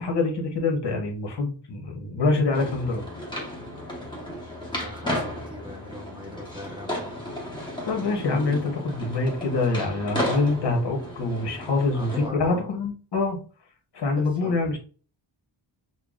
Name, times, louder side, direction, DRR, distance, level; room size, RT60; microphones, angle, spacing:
voice 1, 0.0-3.0 7.9-13.4 13.9-14.8, left 3 dB, 55° left, 2 dB, 1.1 m, -25 dB
sound 1, 2.5-12.3, left 1 dB, 10° left, 1.1 m, -34 dB
voice 2, 4.7-7.3 10.5-10.6 11.9-12.6 14.1-14.6, left 1 dB, 10° right, -3 dB, 0.8 m, -39 dB
5.6 x 2.1 x 2.4 m, 0.38 s
wide cardioid pair, 135°, 48 cm